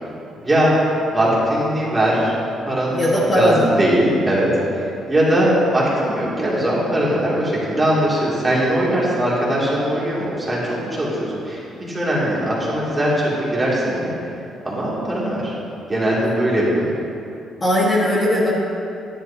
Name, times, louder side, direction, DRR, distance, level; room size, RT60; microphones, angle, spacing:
voice 1, 0.4-0.7 1.1-2.3 2.7-3.0 3.3-14.1 14.6-15.5 15.9-17.0, right 1 dB, 15° right, -7 dB, 2.5 m, -20 dB
voice 2, 2.9-3.7 17.6-18.5, equal, 20° left, -7 dB, 1.5 m, -18 dB
14.0 x 11.0 x 2.8 m, 2.7 s
cardioid pair, 165°, 0 cm